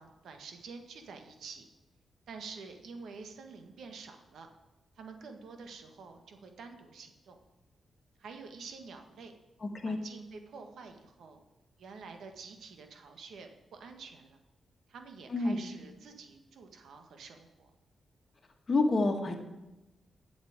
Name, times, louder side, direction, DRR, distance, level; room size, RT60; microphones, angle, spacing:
voice 1, 0.0-1.7 2.3-4.5 5.0-7.4 8.2-9.3 9.8-11.4 11.8-14.4 14.9-17.7, right 4 dB, 80° right, 5 dB, 1.6 m, -48 dB
voice 2, 9.6-10.0 15.3-15.6 18.7-19.4, left 2 dB, 35° left, 3 dB, 1.7 m, -28 dB
8.7 x 7.2 x 8.8 m, 1.0 s
cardioid pair, 105°, 0 cm